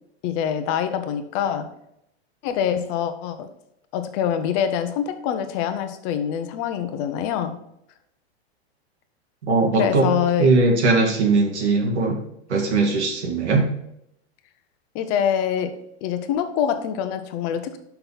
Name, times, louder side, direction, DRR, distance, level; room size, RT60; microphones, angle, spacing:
voice 1, 0.2-1.7 2.4-3.4 3.9-7.6 9.8-10.5 14.9-15.7 16.0-17.8, left 9 dB, 40° left, 9 dB, 0.8 m, -25 dB
voice 2, 9.4-10.1 10.4-12.2 12.5-13.6, right 3 dB, 90° right, 1 dB, 2.3 m, -19 dB
5.8 x 5.4 x 5.7 m, 0.78 s
hypercardioid pair, 140°, 33 cm